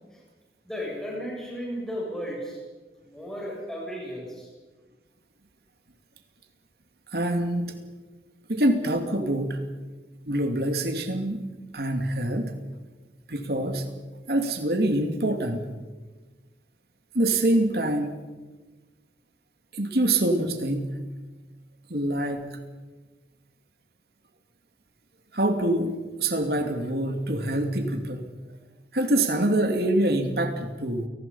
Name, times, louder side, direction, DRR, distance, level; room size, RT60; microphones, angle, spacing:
voice 1, 0.6-2.6 3.0-4.5, equal, 5° left, -3 dB, 7.6 m, -34 dB
voice 2, 7.1-7.7 8.5-9.6 10.3-11.5 11.7-12.5 13.3-13.9 14.3-15.7 17.1-18.1 19.7-20.9 21.9-22.5 25.3-28.3 28.9-31.1, right 1 dB, 60° right, 5 dB, 2.5 m, -25 dB
30.0 x 19.0 x 5.6 m, 1.3 s
head